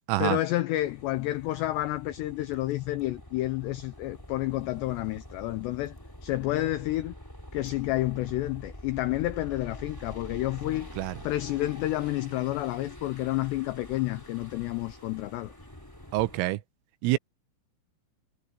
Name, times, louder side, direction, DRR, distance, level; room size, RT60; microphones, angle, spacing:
voice 1, 0.2-6.0 6.2-7.1 7.5-10.9 11.2-15.5, left 16 dB, 85° left, 2.4 m, -30 dB
sound 1, 0.7-16.5, left 1 dB, 5° left, 1.8 m, -46 dB
voice 2, 16.1-16.6 17.0-17.2, right 18 dB, 85° right, 3.2 m, -26 dB
omnidirectional pair, 5.9 m